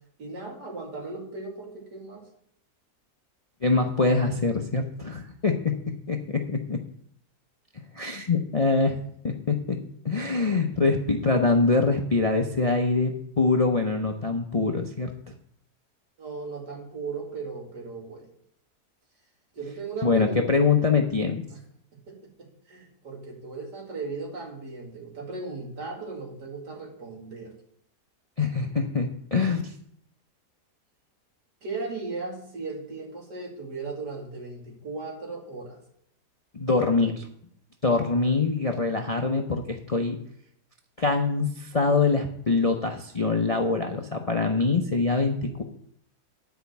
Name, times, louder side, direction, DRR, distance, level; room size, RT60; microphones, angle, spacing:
voice 1, 0.2-2.3 16.2-18.3 19.5-20.5 20.8-20.9 21.5-21.6 21.9-27.5 31.6-35.8, right 3 dB, 90° right, -1 dB, 2.9 m, -37 dB
voice 2, 3.6-5.7 6.1-6.8 7.9-9.8 10.0-15.3 20.0-21.4 28.4-29.7 36.5-37.3 37.8-40.2 41.0-45.6, left 3 dB, 45° left, 3 dB, 0.4 m, -24 dB
10.5 x 5.1 x 6.9 m, 0.69 s
omnidirectional pair, 1.7 m